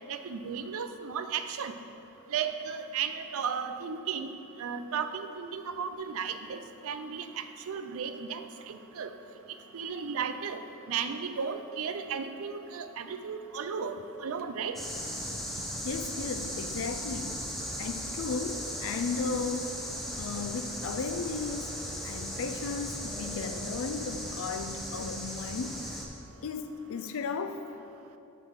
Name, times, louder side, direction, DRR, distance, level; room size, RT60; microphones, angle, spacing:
voice 1, 0.1-1.7 2.3-9.1 9.7-10.6 10.9-14.8, right 6 dB, 65° right, 9 dB, 0.4 m, -35 dB
sound 1, 14.8-26.1, equal, ahead, 0.7 m, -37 dB
voice 2, 15.8-17.4 17.8-19.7 20.2-21.7 22.0-25.8 26.4-27.6, left 4 dB, 65° left, 9 dB, 0.4 m, -35 dB
7.3 x 3.9 x 6.3 m, 2.8 s
head